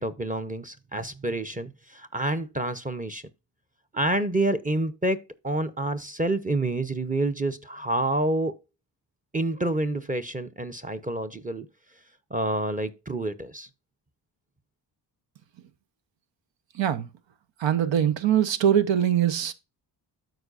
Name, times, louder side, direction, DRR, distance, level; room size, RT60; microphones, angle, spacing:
voice 1, 0.0-3.2 3.9-8.6 9.3-11.7 12.3-13.7, right 2 dB, 20° right, 0.8 m, -28 dB
voice 2, 16.7-17.1 17.6-19.5, right 10 dB, 80° right, 1.0 m, -22 dB
13.0 x 4.7 x 2.5 m
cardioid pair, 110°, 44 cm